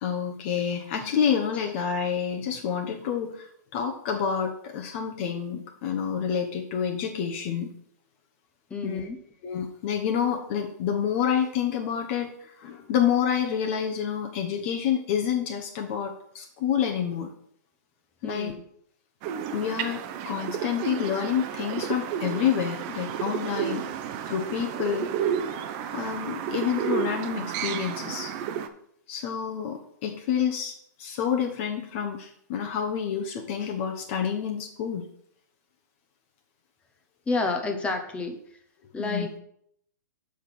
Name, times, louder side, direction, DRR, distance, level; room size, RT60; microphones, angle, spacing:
voice 1, 0.0-7.7 8.8-9.1 9.4-17.3 18.2-18.5 19.5-23.8 24.3-25.1 25.9-28.3 29.1-35.0 39.0-39.3, left 8 dB, 40° left, 2 dB, 1.0 m, -28 dB
voice 2, 8.7-9.2 18.2-18.6 37.3-38.4 38.9-39.4, left 3 dB, 10° left, 5 dB, 0.9 m, -29 dB
sound 1, 19.2-28.7, right 8 dB, 35° right, 0.7 m, -31 dB
6.5 x 5.3 x 6.0 m, 0.69 s
hypercardioid pair, 145°, 10 cm